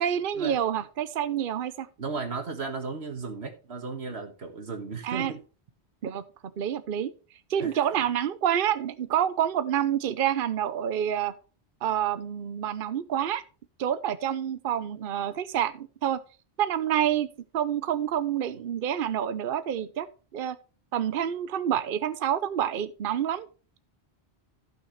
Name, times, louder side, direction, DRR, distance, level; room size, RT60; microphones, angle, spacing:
voice 1, 0.0-1.9 5.0-5.3 6.0-6.2 6.6-7.1 7.5-11.3 11.8-13.4 13.8-16.2 16.6-17.3 17.5-20.1 20.3-20.6 20.9-23.5, right 10 dB, 60° right, 13 dB, 0.8 m, -28 dB
voice 2, 2.0-5.4 7.6-7.8 18.5-18.6, right 4 dB, 75° right, 6 dB, 2.0 m, -35 dB
14.5 x 6.5 x 3.2 m, 0.35 s
omnidirectional pair, 1.1 m